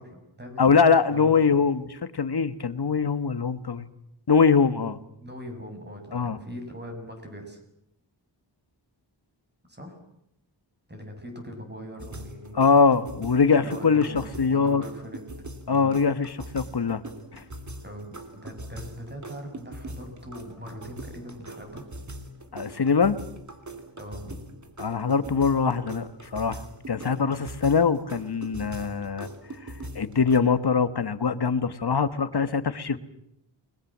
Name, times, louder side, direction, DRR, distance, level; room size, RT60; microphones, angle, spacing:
voice 1, 0.0-0.7 1.1-1.6 5.2-7.6 9.7-10.0 10.9-12.6 13.5-15.3 15.7-15.9 17.8-18.1 18.4-21.8 24.0-24.4 32.9-33.0, equal, 20° right, 3 dB, 7.1 m, -41 dB
voice 2, 0.6-1.8 2.1-3.9 4.3-5.0 6.1-6.4 12.5-14.8 15.7-17.0 17.3-17.4 22.5-23.2 24.8-29.3 29.6-33.0, left 5 dB, 55° left, 13 dB, 1.4 m, -23 dB
sound 1, 12.0-30.4, right 1 dB, 40° right, 3.1 m, -42 dB
29.5 x 21.0 x 7.4 m, 0.79 s
wide cardioid pair, 90°, 45 cm